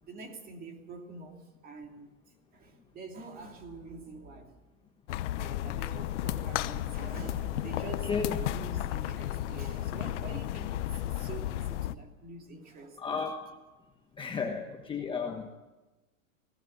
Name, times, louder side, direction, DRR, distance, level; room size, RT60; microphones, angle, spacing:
voice 1, 0.0-2.2 2.5-4.6 5.3-8.1 8.4-13.3, right 3 dB, 20° right, 4 dB, 2.9 m, -46 dB
sound 1, 5.1-11.9, left 13 dB, 60° left, 1.0 m, -33 dB
voice 2, 8.0-8.4 13.0-13.5 14.2-15.5, left 5 dB, 10° left, 3 dB, 1.2 m, -33 dB
20.0 x 17.0 x 8.0 m, 1.1 s
supercardioid pair, 150°, 41 cm